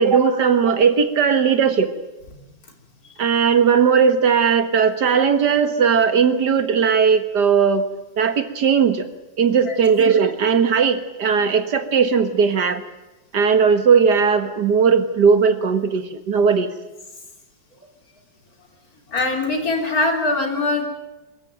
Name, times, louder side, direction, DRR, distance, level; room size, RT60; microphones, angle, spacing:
voice 1, 0.0-1.9 3.2-7.9 8.2-9.1 9.4-12.8 13.3-16.7, right 6 dB, 65° right, 9 dB, 2.0 m, -17 dB
voice 2, 19.1-20.8, left 2 dB, 50° left, 3 dB, 3.9 m, -22 dB
24.0 x 14.0 x 9.1 m, 1.1 s
omnidirectional pair, 2.0 m